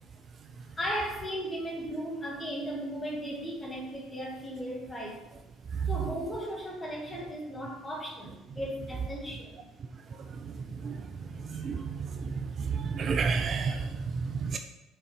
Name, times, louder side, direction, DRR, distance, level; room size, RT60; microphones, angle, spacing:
voice 1, 0.7-5.2 5.9-9.5 10.1-10.3 11.5-11.8, equal, 20° left, -2 dB, 2.1 m, -36 dB
voice 2, 11.5-14.6, right 5 dB, 40° right, 7 dB, 0.4 m, -31 dB
5.7 x 4.1 x 5.6 m, 1.0 s
figure-of-eight pair, 60°, 0 cm